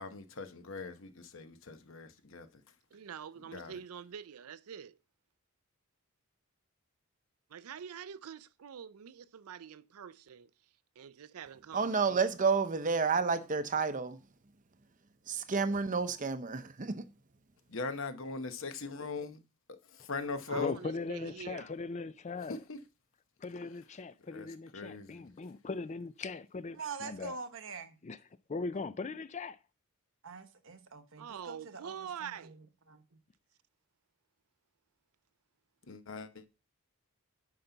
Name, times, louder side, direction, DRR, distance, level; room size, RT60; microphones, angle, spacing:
voice 1, 0.0-2.5 3.5-3.7 17.7-19.4 20.0-20.7 22.5-22.8 24.3-24.5 24.7-25.3 35.9-36.5, left 4 dB, 60° left, 0.9 m, -40 dB
voice 2, 2.9-5.0 7.5-10.5 11.0-12.2 20.5-21.7 31.2-32.6, right 8 dB, 80° right, 0.5 m, -46 dB
voice 3, 11.7-14.2 15.3-17.0, right 5 dB, 35° right, 0.7 m, -30 dB
voice 4, 20.5-22.6 23.4-27.3 28.0-28.2 28.5-29.6, left 4 dB, 30° left, 0.4 m, -39 dB
voice 5, 26.7-28.0 30.2-32.6 32.9-33.0, right 4 dB, 60° right, 1.1 m, -44 dB
9.7 x 5.8 x 3.9 m
head